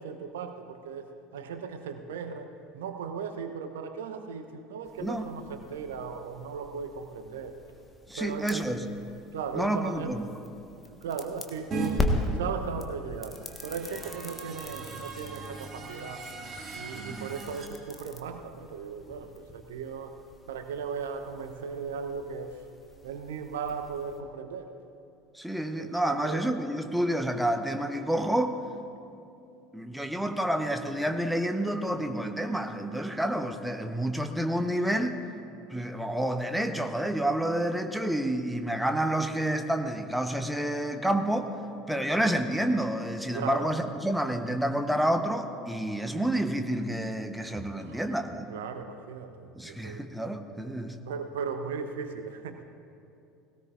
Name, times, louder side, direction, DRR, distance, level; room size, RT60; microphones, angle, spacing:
voice 1, 0.0-7.6 8.2-8.7 9.3-10.1 10.9-12.1 12.4-16.2 16.7-20.1 20.5-22.6 23.0-24.7 25.7-26.4 43.3-43.7 47.8-48.0 48.5-50.1 50.5-50.6 51.1-52.6, right 6 dB, 70° right, 7 dB, 0.7 m, -37 dB
sound 1, 4.8-24.2, left 1 dB, 20° left, 1.3 m, -40 dB
voice 2, 5.0-5.3 8.1-8.8 9.5-10.3 17.1-17.3 25.3-28.6 29.7-35.2 35.7-41.5 41.9-48.5 49.5-51.0, right 1 dB, ahead, 7 dB, 0.9 m, -29 dB
sound 2, 11.7-11.9 13.3-17.7, right 4 dB, 35° right, 2.1 m, -38 dB
19.5 x 17.5 x 2.5 m, 2.6 s
figure-of-eight pair, 65°, 0 cm